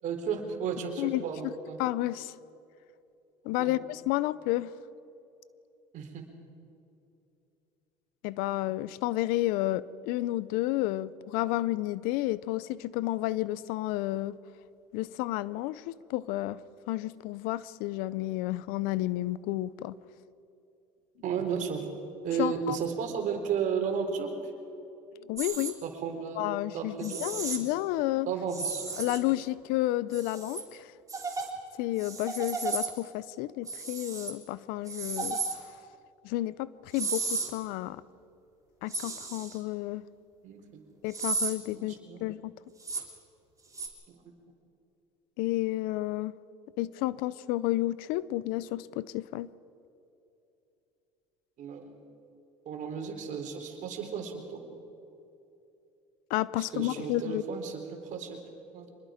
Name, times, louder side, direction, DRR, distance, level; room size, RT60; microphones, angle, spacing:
voice 1, 0.0-1.8 3.6-3.8 5.9-6.3 21.2-21.9 22.2-24.3 25.8-26.5 26.7-27.7 28.3-28.8 40.4-40.8 41.7-42.2 44.1-44.2 51.6-52.0 52.7-54.6 56.6-58.4 58.7-58.9, right 6 dB, 55° right, 4 dB, 3.7 m, -34 dB
voice 2, 1.8-2.3 3.4-4.7 8.2-14.4 14.9-16.6 16.9-19.9 22.4-22.8 25.2-25.8 26.4-28.3 29.0-30.9 31.8-35.4 36.2-38.0 38.8-40.0 41.0-41.9 42.2-42.5 45.4-46.3 46.8-49.5 56.3-57.4, left 16 dB, 75° left, 19 dB, 0.6 m, -31 dB
sound 1, 25.4-25.7 27.0-27.6 28.5-29.3 30.1-30.6 31.1-31.5 32.0-32.9 33.7-34.3 34.9-35.6 36.9-37.5 38.9-39.6 41.1-41.5 42.8-43.0 43.7-43.9, right 4 dB, 20° right, 3.3 m, -33 dB
25.0 x 20.5 x 5.1 m, 2.8 s
supercardioid pair, 90°, 15 cm